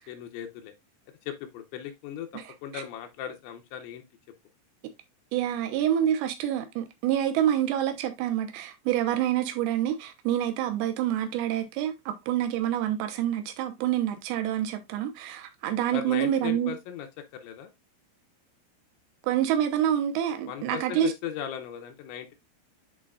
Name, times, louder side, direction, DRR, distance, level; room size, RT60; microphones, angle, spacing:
voice 1, 0.1-0.7 1.3-4.0 15.9-17.1 17.3-17.7 20.5-22.3, left 9 dB, 80° left, 2.9 m, -37 dB
voice 2, 5.3-16.7 19.3-21.1, right 11 dB, 85° right, 2.3 m, -27 dB
11.0 x 3.9 x 2.4 m
omnidirectional pair, 5.5 m